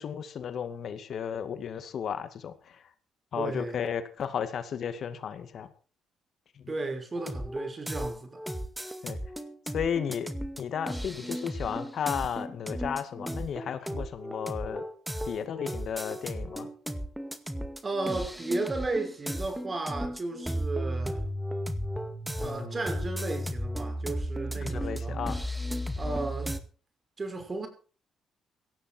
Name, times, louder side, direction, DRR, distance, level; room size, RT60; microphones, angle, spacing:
voice 1, 0.0-2.8 3.3-5.7 9.0-9.2 9.7-10.3 10.6-14.8 15.3-16.7 22.4-22.8 24.6-25.4 26.1-26.2, left 8 dB, 60° left, 2.1 m, -34 dB
voice 2, 3.3-3.8 6.7-8.4 17.8-21.2 22.4-25.2 26.0-26.5 27.2-27.7, right 3 dB, 30° right, 6.0 m, -34 dB
sound 1, 7.2-26.6, equal, 5° right, 2.1 m, -34 dB
17.5 x 14.5 x 4.6 m
cardioid pair, 90°, 0 cm